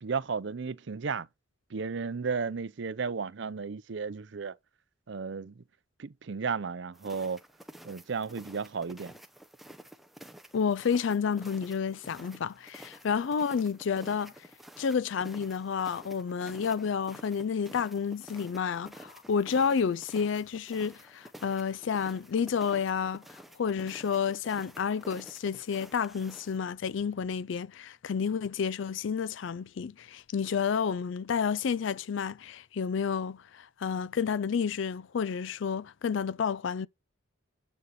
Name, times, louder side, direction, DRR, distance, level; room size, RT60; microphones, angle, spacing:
voice 1, 0.0-1.3 1.7-4.6 5.1-5.6 6.0-7.4 7.8-9.1, right 5 dB, 60° right, 0.5 m, -34 dB
sound 1, 6.9-26.6, right 1 dB, ahead, 0.7 m, -51 dB
voice 2, 10.5-14.3 14.8-36.9, left 6 dB, 65° left, 0.4 m, -30 dB
9.4 x 6.3 x 4.2 m
head